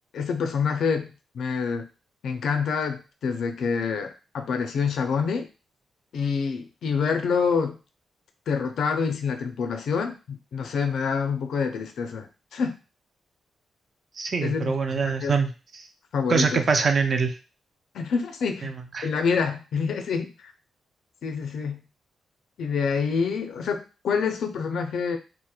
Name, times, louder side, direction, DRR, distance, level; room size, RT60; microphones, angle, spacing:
voice 1, 0.1-1.1 1.3-1.9 2.2-5.5 6.1-7.8 8.5-12.8 14.4-15.3 16.1-16.6 17.9-18.7 19.0-20.5 21.2-21.8 22.6-25.2, left 5 dB, 70° left, 6 dB, 0.4 m, -27 dB
voice 2, 14.2-15.9 16.3-17.3 18.6-19.1, right 5 dB, 40° right, 6 dB, 0.3 m, -24 dB
2.8 x 2.1 x 2.3 m, 0.32 s
cardioid pair, 135°, 0 cm